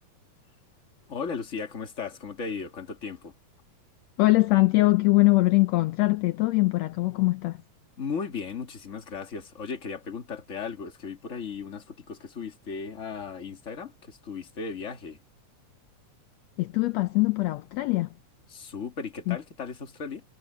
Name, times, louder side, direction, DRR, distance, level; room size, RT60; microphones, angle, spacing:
voice 1, 1.1-3.3 8.0-15.2 18.5-20.2, left 5 dB, 25° left, 2.2 m, -36 dB
voice 2, 4.2-7.6 16.6-18.1 19.3-19.4, left 21 dB, 75° left, 1.8 m, -22 dB
omnidirectional pair, 3.4 m